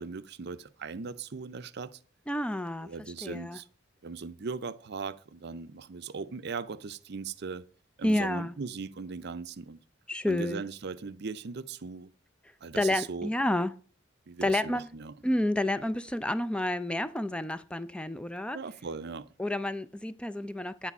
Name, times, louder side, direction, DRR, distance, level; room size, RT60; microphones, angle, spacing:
voice 1, 0.0-2.0 2.8-3.7 4.0-7.7 8.0-9.8 10.3-12.1 12.6-13.3 14.3-15.1 18.5-19.3, right 5 dB, 55° right, 0.6 m, -39 dB
voice 2, 2.3-2.9 3.2-3.6 8.0-8.5 10.1-10.6 12.8-13.7 14.4-14.9 15.2-18.6 19.4-20.9, left 1 dB, 5° left, 0.4 m, -30 dB
10.0 x 8.6 x 5.3 m
head